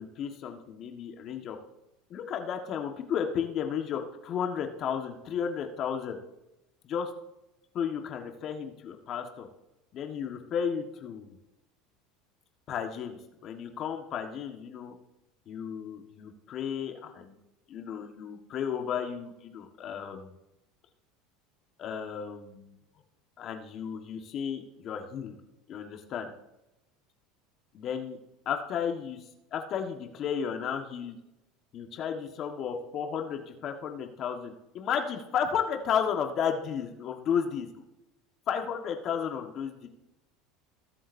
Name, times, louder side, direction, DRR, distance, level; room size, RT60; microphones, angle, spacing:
voice 1, 0.0-1.6 2.1-6.2 6.8-7.1 7.7-9.5 9.9-11.4 12.7-14.9 15.5-17.4 17.7-20.4 21.8-22.8 23.4-25.3 25.7-26.3 27.7-28.2 28.4-29.2 29.5-31.2 31.7-37.7 38.5-39.9, left 7 dB, 50° left, 4 dB, 1.5 m, -33 dB
20.5 x 7.6 x 2.7 m, 0.91 s
supercardioid pair, 100°, 0 cm